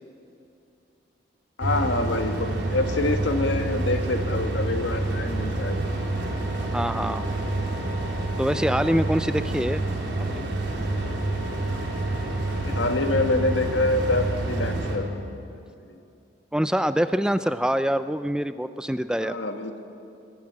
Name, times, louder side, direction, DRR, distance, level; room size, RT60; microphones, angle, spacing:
voice 1, 1.6-5.8 12.5-15.1 15.9-16.0 19.2-19.8, left 2 dB, 85° left, 6 dB, 1.9 m, -26 dB
sound 1, 1.6-14.9, right 2 dB, 75° right, 4.1 m, -28 dB
voice 2, 6.7-7.3 8.4-9.8 10.3-10.4 16.5-19.4, equal, 5° right, 12 dB, 0.4 m, -25 dB
21.0 x 18.5 x 8.9 m, 2.6 s
head